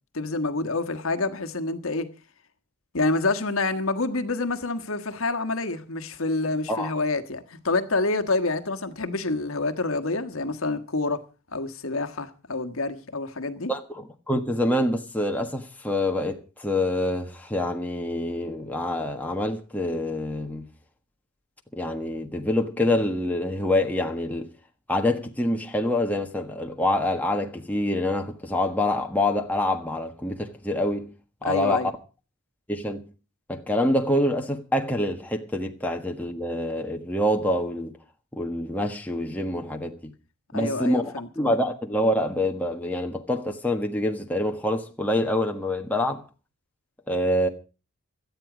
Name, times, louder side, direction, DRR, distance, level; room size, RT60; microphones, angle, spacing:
voice 1, 0.1-2.1 2.9-11.2 11.5-13.7 31.4-31.9 40.5-41.3, left 3 dB, 65° left, 1.5 m, -27 dB
voice 2, 13.7-20.7 21.7-24.5 24.9-31.1 31.4-31.9 32.7-33.1 33.5-37.9 38.3-40.1 40.5-46.2 47.1-47.5, left 1 dB, 5° left, 1.4 m, -26 dB
18.0 x 12.5 x 5.0 m
head